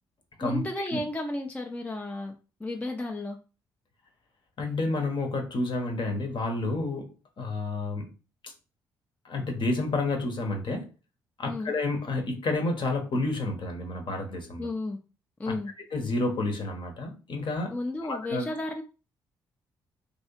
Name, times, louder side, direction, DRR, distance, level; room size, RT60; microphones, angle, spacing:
voice 1, 0.4-3.4 11.4-11.7 14.6-15.0 15.4-15.7 17.7-18.8, left 2 dB, 15° left, 0.5 m, -33 dB
voice 2, 4.6-7.1 7.4-8.1 8.4-8.5 9.2-10.9 11.4-14.7 15.5-15.6 15.9-17.7 18.0-18.5, left 2 dB, 45° left, 0.9 m, -30 dB
3.0 x 2.7 x 2.9 m
hypercardioid pair, 45°, 11 cm